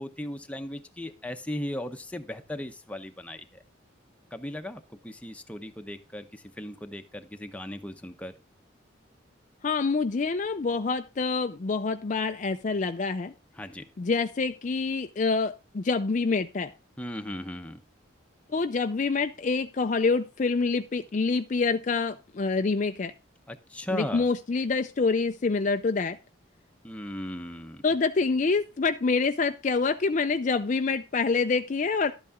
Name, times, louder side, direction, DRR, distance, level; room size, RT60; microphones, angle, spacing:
voice 1, 0.0-3.6 4.3-8.3 13.5-13.9 17.0-17.8 23.5-24.3 26.8-27.8, left 1 dB, 5° left, 0.8 m, -37 dB
voice 2, 9.6-13.3 14.0-16.7 18.5-23.1 23.9-26.2 27.8-32.1, left 4 dB, 40° left, 0.4 m, -26 dB
12.0 x 8.4 x 3.6 m
head